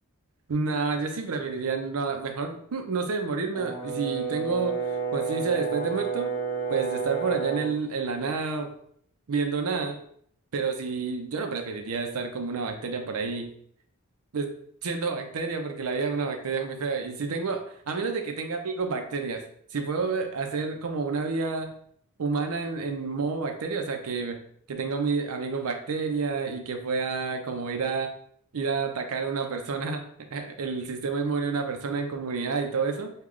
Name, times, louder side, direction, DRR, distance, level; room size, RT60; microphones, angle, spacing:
voice 1, 0.5-6.3 6.7-8.7 9.3-10.0 10.5-13.5 14.3-14.5 14.8-19.4 19.7-21.7 22.2-24.4 24.7-28.1 28.5-30.0 30.3-33.1, right 4 dB, 70° right, 4 dB, 0.5 m, -29 dB
Brass instrument, 3.5-7.8, right 5 dB, 40° left, 1.1 m, -30 dB
3.1 x 2.3 x 3.7 m, 0.64 s
head